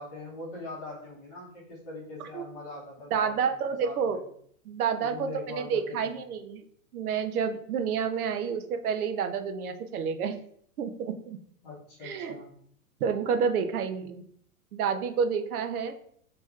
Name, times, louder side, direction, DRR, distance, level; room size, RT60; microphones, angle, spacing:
voice 1, 0.0-4.2 5.0-6.1 11.6-12.5, left 2 dB, 20° left, -4 dB, 0.9 m, -42 dB
voice 2, 3.1-4.2 4.7-6.6 6.9-10.3 10.8-11.4 12.0-12.3 13.0-14.2 14.7-16.0, right 6 dB, 90° right, 7 dB, 0.7 m, -29 dB
6.1 x 3.0 x 2.4 m, 0.65 s
supercardioid pair, 175°, 43 cm